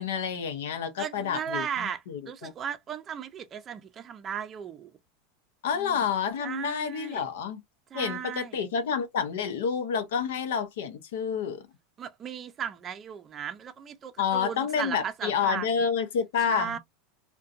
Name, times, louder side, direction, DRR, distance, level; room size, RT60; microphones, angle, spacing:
voice 1, 0.0-2.5 5.6-7.6 7.9-11.6 14.2-16.8, left 7 dB, 85° left, 0.7 m, -29 dB
voice 2, 1.0-5.0 5.7-6.0 6.4-7.2 7.9-8.6 12.0-15.7 16.4-16.8, right 8 dB, 30° right, 0.4 m, -36 dB
2.6 x 2.2 x 2.4 m
supercardioid pair, 120°, 0 cm